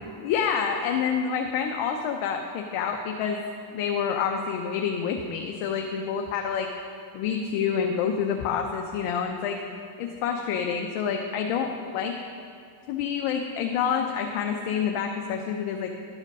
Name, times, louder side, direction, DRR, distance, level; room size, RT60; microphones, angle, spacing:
voice 1, 0.2-3.4 3.7-6.7 7.1-9.6 10.0-12.2 12.9-15.9, left 7 dB, 85° left, 3 dB, 0.7 m, -28 dB
11.5 x 5.0 x 5.3 m, 2.3 s
supercardioid pair, 60°, 49 cm